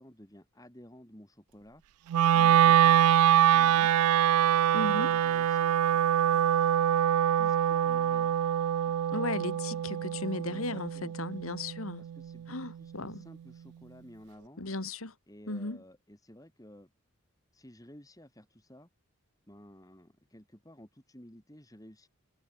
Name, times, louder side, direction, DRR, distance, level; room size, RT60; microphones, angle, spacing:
voice 1, 0.0-1.8 2.3-3.9 4.7-6.8 7.4-8.4 10.4-11.1 12.0-14.6 15.3-16.9 17.5-18.9 19.5-22.1, equal, 15° left, 3.0 m, -53 dB
Wind instrument woodwind instrument, 2.1-12.3, right 10 dB, 90° right, 0.3 m, -24 dB
voice 2, 4.7-5.1 9.1-12.0 12.5-13.2 14.6-15.1 15.5-15.8, left 2 dB, 75° left, 2.3 m, -35 dB
head